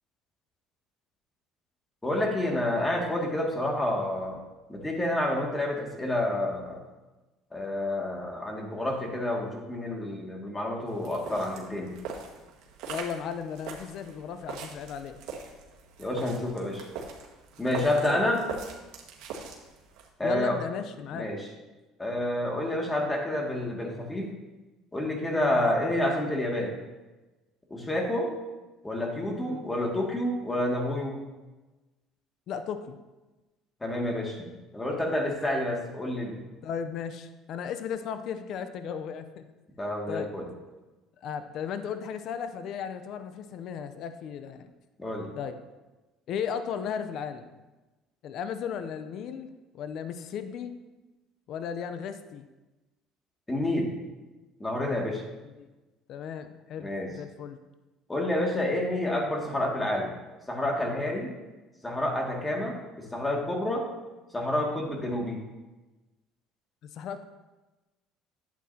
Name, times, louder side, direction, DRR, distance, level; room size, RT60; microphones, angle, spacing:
voice 1, 2.0-4.4 4.7-6.8 7.5-11.9 16.0-16.9 17.6-18.5 20.2-20.6 21.1-21.5 22.0-24.3 24.9-26.8 27.7-28.4 28.8-31.2 33.8-34.4 34.7-36.4 39.8-40.5 45.0-45.3 53.5-53.9 54.6-55.2 56.8-57.1 58.1-60.1 60.5-61.3 61.8-63.9 64.3-65.4, left 1 dB, 15° left, 0 dB, 2.3 m, -29 dB
sound 1, 10.9-20.1, right 5 dB, 75° right, 1.7 m, -42 dB
voice 2, 12.9-15.2 17.8-18.2 20.2-21.3 25.4-25.7 29.5-29.6 32.5-33.0 36.6-39.4 40.1-40.3 41.2-44.7 45.4-45.6 46.3-47.5 48.2-50.7 51.5-52.4 55.6-55.7 56.1-57.6 66.9-67.2, left 7 dB, 60° left, 10 dB, 0.7 m, -35 dB
11.5 x 8.3 x 2.9 m, 1.1 s
supercardioid pair, 90°, 0 cm